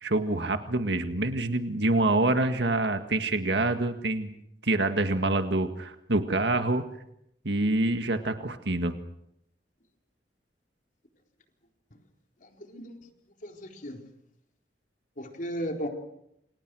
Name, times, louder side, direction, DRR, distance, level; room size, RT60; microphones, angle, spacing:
voice 1, 0.0-4.3 4.6-6.9 7.4-8.9, right 2 dB, 70° right, 7 dB, 1.9 m, -26 dB
voice 2, 12.5-13.0 13.4-14.0 15.2-15.9, equal, 50° left, 3 dB, 4.2 m, -35 dB
28.5 x 27.5 x 6.3 m, 0.77 s
head